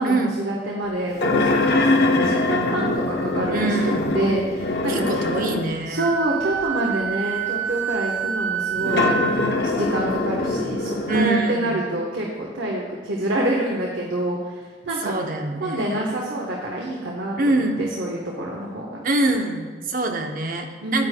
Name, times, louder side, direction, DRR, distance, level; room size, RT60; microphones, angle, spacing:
voice 1, 0.0-5.3 5.9-9.5 9.7-15.1 15.6-19.0 20.8-21.1, right 1 dB, 85° right, -2 dB, 1.0 m, -27 dB
sound 1, 1.2-5.8 6.6-6.7 8.8-11.4, left 2 dB, 60° left, 0.6 m, -23 dB
voice 2, 3.5-4.1 4.9-6.1 11.1-11.8 15.0-16.1 17.4-17.8 19.0-21.1, right 2 dB, 50° right, 4 dB, 0.7 m, -24 dB
Wind instrument woodwind instrument, 6.0-9.5, right 8 dB, 65° right, 1.2 m, -27 dB
9.6 x 9.2 x 2.2 m, 1.5 s
head